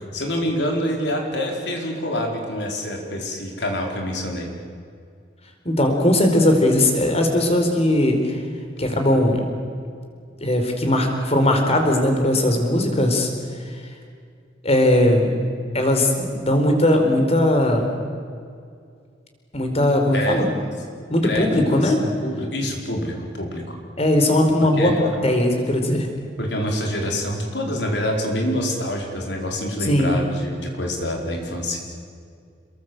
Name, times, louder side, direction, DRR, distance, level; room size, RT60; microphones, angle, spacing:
voice 1, 0.1-4.5 20.1-20.4 21.2-23.8 24.8-25.0 26.4-31.8, equal, 70° left, 1 dB, 4.8 m, -26 dB
voice 2, 5.6-8.4 8.8-9.5 10.4-13.3 14.6-15.4 15.7-17.9 19.5-20.5 21.1-22.0 24.0-26.1 29.8-30.2, left 1 dB, 35° left, 4 dB, 4.4 m, -19 dB
28.5 x 22.0 x 8.0 m, 2.2 s
head